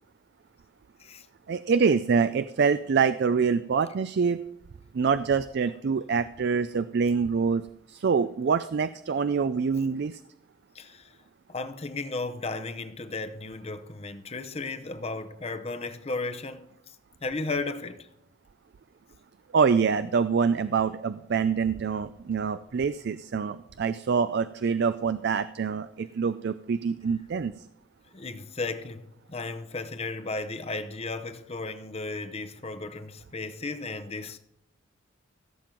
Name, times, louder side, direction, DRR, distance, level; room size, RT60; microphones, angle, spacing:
voice 1, 1.5-4.4 4.9-10.2 19.5-27.6, right 5 dB, 55° right, 0.4 m, -25 dB
voice 2, 10.7-11.1 11.5-16.7 17.2-18.1 28.1-34.4, left 3 dB, 30° left, 0.8 m, -35 dB
16.0 x 7.5 x 3.8 m
head